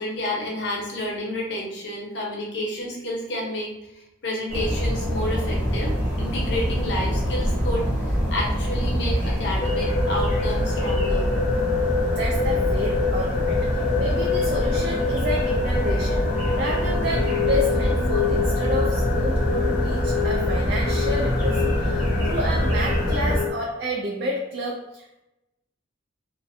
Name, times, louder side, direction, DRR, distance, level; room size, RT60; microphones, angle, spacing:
voice 1, 0.0-11.3, left 1 dB, 65° left, -2 dB, 0.8 m, -30 dB
sound 1, 4.5-23.4, equal, 10° right, 0.6 m, -25 dB
sound 2, 9.6-23.5, left 5 dB, 50° left, 0.4 m, -27 dB
voice 2, 12.1-16.2 16.5-25.2, equal, 55° right, -1 dB, 0.3 m, -30 dB
2.5 x 2.1 x 2.5 m, 0.92 s
head